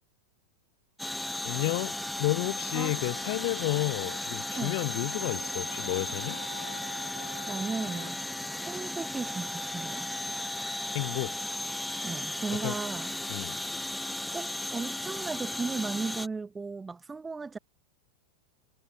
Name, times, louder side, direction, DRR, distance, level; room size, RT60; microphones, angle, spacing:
sound 1, 1.0-16.3, left 1 dB, 5° left, 0.4 m, -35 dB
voice 1, 1.4-6.4 10.9-11.4 12.5-12.7 13.3-13.6, left 28 dB, 45° left, 0.6 m, -31 dB
sound 2, 2.8-4.2 4.5-8.1, left 4 dB, 75° left, 1.1 m, -47 dB
voice 2, 7.5-8.2 8.6-10.1 12.0-13.1 14.3-17.6, right 4 dB, 10° right, 0.9 m, -36 dB
figure-of-eight pair, 90°, 0 cm